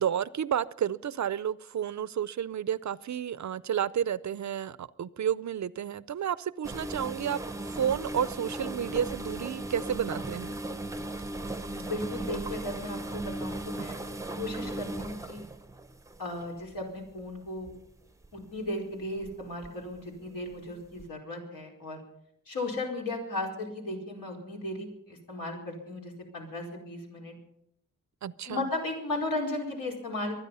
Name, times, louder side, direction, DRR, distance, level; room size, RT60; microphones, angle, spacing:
voice 1, 0.0-7.4 7.7-10.5 28.2-28.7, right 9 dB, 55° right, 0.5 m, -31 dB
sound 1, 6.6-16.8 17.5-17.7 18.2-18.4 19.2-19.7 20.0-20.1 21.0-21.1, right 1 dB, 10° right, 0.7 m, -37 dB
voice 2, 11.7-14.0 14.4-15.5 16.2-17.7 18.3-22.0 22.5-27.4 28.5-30.3, left 2 dB, 75° left, 4.8 m, -36 dB
24.0 x 10.0 x 5.5 m
wide cardioid pair, 135°, 34 cm